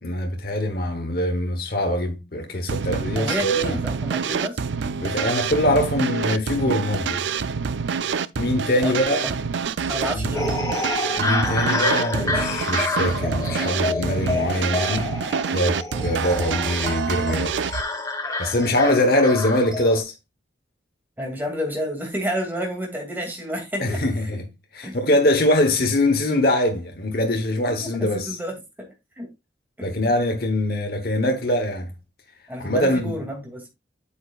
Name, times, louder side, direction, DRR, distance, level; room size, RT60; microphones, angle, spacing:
voice 1, 0.0-3.8 5.0-7.2 8.4-9.3 10.1-10.3 11.2-15.1 15.5-17.8 18.4-20.1 23.8-24.5 24.7-28.4 29.8-31.9 32.6-33.1, left 1 dB, 55° left, 1.0 m, -23 dB
sound 1, 2.7-17.8, right 6 dB, 80° right, 0.5 m, -27 dB
voice 2, 3.1-4.6 8.8-9.4 9.9-10.6 21.2-24.0 24.8-25.0 27.7-28.9 29.2-29.3 29.8-30.1 32.5-33.7, equal, 10° right, 2.4 m, -30 dB
sound 2, 10.3-20.0, left 2 dB, 20° left, 1.5 m, -28 dB
8.5 x 7.0 x 2.4 m
head